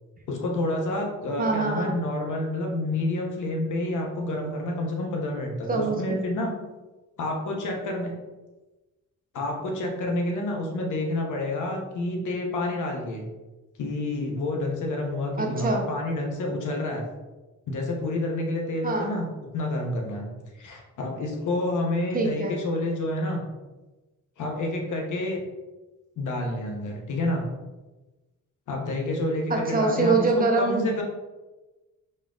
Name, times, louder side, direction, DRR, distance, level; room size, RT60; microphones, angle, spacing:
voice 1, 0.3-6.5 7.2-8.1 9.3-13.2 13.8-17.0 17.7-19.2 19.5-20.2 20.6-23.4 24.4-25.4 26.2-27.4 28.7-30.3 30.6-31.0, left 1 dB, 75° left, 1 dB, 0.9 m, -29 dB
voice 2, 1.4-1.9 5.7-6.2 15.4-15.8 18.8-19.1 22.1-22.6 29.5-31.0, right 3 dB, 30° right, 1 dB, 0.7 m, -24 dB
4.3 x 3.7 x 2.4 m, 1.1 s
cardioid pair, 105°, 30 cm